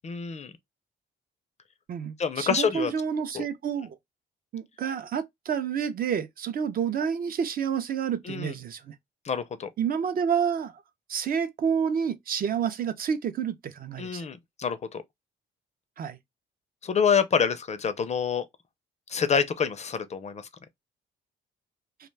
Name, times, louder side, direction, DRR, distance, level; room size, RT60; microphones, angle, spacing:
voice 1, 0.0-0.5 2.2-2.9 3.3-3.5 8.2-8.5 9.2-9.7 14.0-15.0 16.8-18.5 19.1-20.5, left 6 dB, 35° left, 0.4 m, -27 dB
voice 2, 1.9-4.0 4.5-8.9 9.8-10.7 11.1-14.3 16.0-16.2, right 7 dB, 50° right, 0.5 m, -29 dB
2.3 x 2.2 x 3.2 m
cardioid pair, 90°, 20 cm